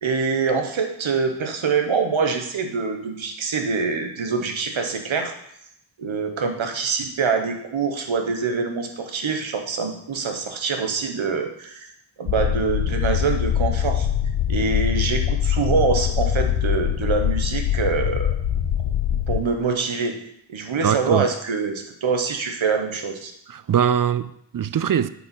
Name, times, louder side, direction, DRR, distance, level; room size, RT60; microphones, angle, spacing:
voice 1, 0.0-5.3 6.0-11.9 12.2-14.1 14.5-18.3 19.3-20.2 20.5-23.3, right 5 dB, 90° right, 1.1 m, -25 dB
sound 1, 12.3-19.4, left 10 dB, 90° left, 0.6 m, -23 dB
voice 2, 20.8-21.3 23.5-25.1, right 9 dB, 45° right, 0.4 m, -22 dB
8.4 x 4.2 x 5.9 m
wide cardioid pair, 60°, 46 cm